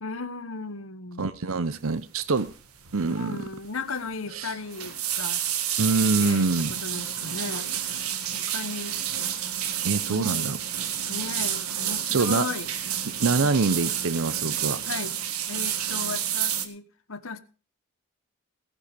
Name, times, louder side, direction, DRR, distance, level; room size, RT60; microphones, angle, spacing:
voice 1, 0.0-1.3 3.0-5.4 6.2-8.0 8.3-9.0 10.1-10.5 11.1-12.7 14.8-15.1 15.5-17.4, left 4 dB, 65° left, 1.2 m, -36 dB
voice 2, 1.2-2.5 2.9-3.4 4.3-4.5 5.8-6.7 9.8-10.6 12.1-12.5 13.2-14.8, right 4 dB, 70° right, 0.7 m, -25 dB
sound 1, 2.4-2.6 2.9-3.2 3.5-3.6 4.5-16.7, right 10 dB, 85° right, 1.8 m, -30 dB
17.5 x 10.0 x 5.1 m
head